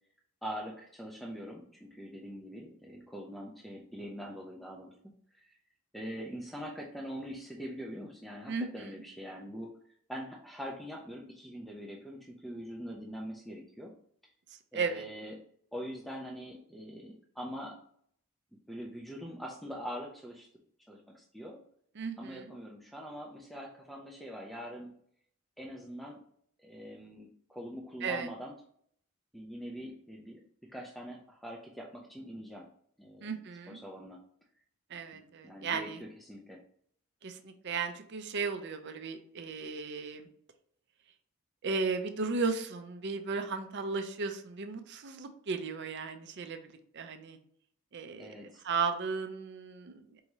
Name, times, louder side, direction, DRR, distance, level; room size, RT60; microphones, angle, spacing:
voice 1, 0.4-4.9 5.3-5.6 5.9-9.7 10.1-13.9 14.7-15.4 15.7-17.8 18.7-20.5 20.9-21.6 22.2-24.9 25.6-26.2 26.6-28.6 29.3-30.4 30.7-32.7 33.0-33.3 33.7-34.2 35.1-36.6 48.2-48.6, equal, ahead, -1 dB, 0.4 m, -43 dB
voice 2, 8.5-8.9 14.7-15.1 22.0-22.5 28.0-28.3 33.2-33.8 34.9-36.0 37.2-40.3 41.6-46.6 46.9-47.4 47.9-50.0, right 4 dB, 55° right, 7 dB, 0.5 m, -35 dB
4.6 x 2.7 x 3.0 m, 0.63 s
head